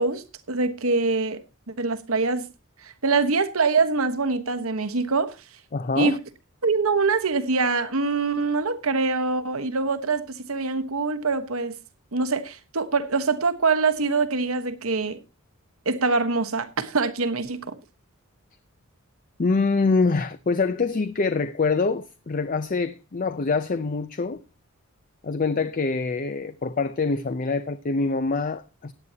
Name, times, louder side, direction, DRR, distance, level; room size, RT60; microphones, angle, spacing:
voice 1, 0.0-1.4 1.7-2.5 2.8-5.4 5.9-6.2 6.6-11.8 12.1-15.2 15.8-17.8, right 4 dB, 80° right, 1.3 m, -24 dB
voice 2, 5.7-6.2 19.4-24.4 25.2-28.9, left 4 dB, 40° left, 0.5 m, -25 dB
17.0 x 9.7 x 2.8 m
head